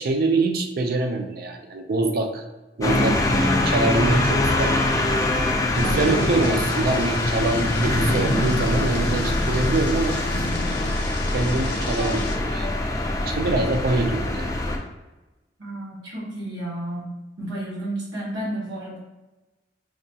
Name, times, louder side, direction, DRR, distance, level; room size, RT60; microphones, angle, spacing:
voice 1, 0.0-2.4 2.8-3.3 3.6-4.8 5.8-10.2 11.3-12.7 13.3-14.5, right 2 dB, 55° right, 4 dB, 0.4 m, -24 dB
sound 1, 2.8-14.8, left 1 dB, 20° left, 0.4 m, -23 dB
Thunder / Rain, 5.7-12.4, left 1 dB, 60° left, 0.6 m, -29 dB
voice 2, 5.8-6.2 15.6-17.1 17.4-19.0, right 1 dB, 80° right, -6 dB, 0.9 m, -32 dB
4.7 x 2.3 x 2.7 m, 1.1 s
head